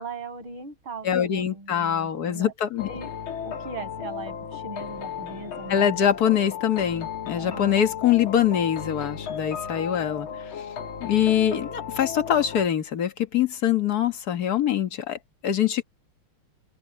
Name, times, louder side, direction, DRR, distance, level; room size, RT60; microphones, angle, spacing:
voice 1, 0.0-2.5 2.9-3.1 3.4-6.1 7.4-7.8, right 4 dB, 75° right, 8.2 m, -39 dB
voice 2, 1.0-2.9 5.7-10.5 11.0-15.8, left 9 dB, 50° left, 1.9 m, -24 dB
sound 1, 2.8-12.7, left 7 dB, 75° left, 2.4 m, -35 dB
omnidirectional pair, 2.3 m